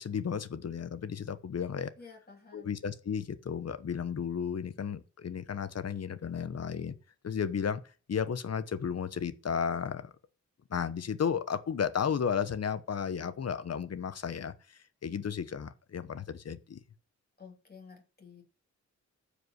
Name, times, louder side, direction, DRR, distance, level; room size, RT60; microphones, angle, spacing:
voice 1, 0.0-1.9 2.5-7.0 7.2-7.8 8.1-10.1 10.7-16.8, left 7 dB, 55° left, 1.0 m, -33 dB
voice 2, 2.0-2.8 17.4-18.4, left 5 dB, 30° left, 2.9 m, -52 dB
14.5 x 5.2 x 6.4 m
wide cardioid pair, 160°, 30 cm